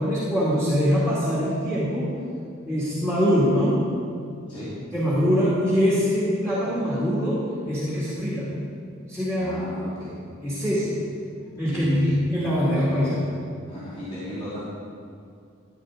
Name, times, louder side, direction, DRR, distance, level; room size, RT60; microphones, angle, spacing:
voice 1, 0.0-2.1 2.7-3.8 4.9-8.6 9.1-9.6 10.4-11.1 11.6-13.3, equal, 5° left, -9 dB, 2.2 m, -23 dB
voice 2, 9.4-10.1 11.7-12.1 13.7-14.7, equal, 25° left, -11 dB, 2.5 m, -35 dB
13.5 x 9.7 x 3.8 m, 2.4 s
head